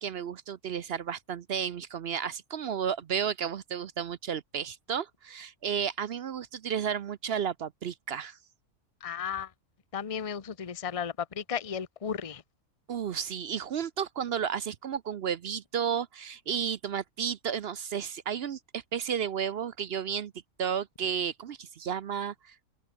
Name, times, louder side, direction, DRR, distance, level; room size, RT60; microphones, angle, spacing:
voice 1, 0.0-8.4 12.9-20.3 20.6-22.5, right 8 dB, 55° right, 0.8 m, -32 dB
voice 2, 9.0-9.5 9.9-12.4, left 7 dB, 30° left, 0.9 m, -34 dB
open air
omnidirectional pair, 1.5 m